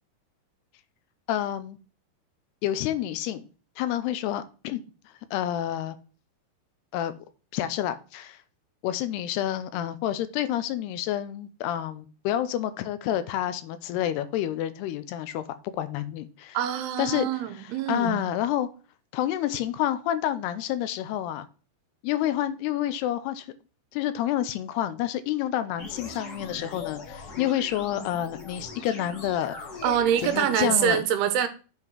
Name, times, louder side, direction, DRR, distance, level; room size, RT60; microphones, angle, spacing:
voice 1, 1.3-1.8 2.6-3.4 3.8-4.9 5.3-6.0 6.9-7.1 7.5-8.4 8.8-15.4 15.7-16.6 17.0-17.3 17.6-18.7 19.1-21.5 22.0-23.5 23.9-29.7 30.2-31.0, left 12 dB, 85° left, 2.7 m, -29 dB
voice 2, 16.5-18.2 29.8-31.5, right 9 dB, 80° right, 2.8 m, -25 dB
sound 1, 25.8-30.9, left 3 dB, 45° left, 1.4 m, -40 dB
7.6 x 5.3 x 4.6 m
omnidirectional pair, 4.7 m